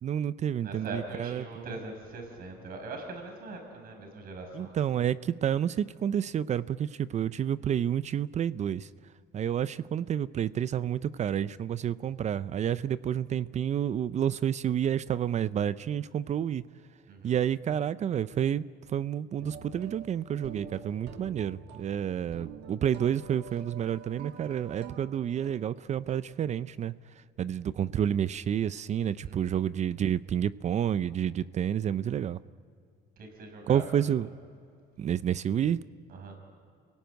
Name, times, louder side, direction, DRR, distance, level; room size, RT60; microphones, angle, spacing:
voice 1, 0.0-1.7 4.5-8.9 9.3-16.6 17.2-18.6 18.9-26.9 27.4-32.4 33.7-34.3 35.0-35.8, right 9 dB, 45° right, 16 dB, 0.5 m, -29 dB
voice 2, 0.6-5.0 17.1-17.4 29.2-29.6 33.2-34.0 36.1-36.4, right 3 dB, 60° right, 4 dB, 5.6 m, -42 dB
sound 1, 19.4-26.2, right 7 dB, 80° right, 1.9 m, -47 dB
27.5 x 17.5 x 9.2 m, 2.4 s
cardioid pair, 110°, 17 cm